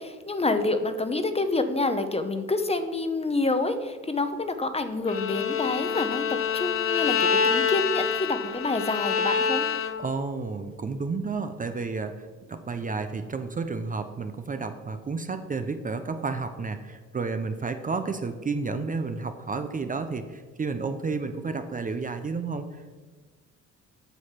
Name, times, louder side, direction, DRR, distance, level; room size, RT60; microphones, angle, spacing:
voice 1, 0.0-9.7, left 2 dB, 20° left, 9 dB, 0.8 m, -27 dB
Bowed string instrument, 5.1-10.2, left 6 dB, 45° left, 0.8 m, -26 dB
voice 2, 10.0-23.0, right 4 dB, 25° right, 8 dB, 0.6 m, -31 dB
8.1 x 6.4 x 5.7 m, 1.4 s
cardioid pair, 90°, 30 cm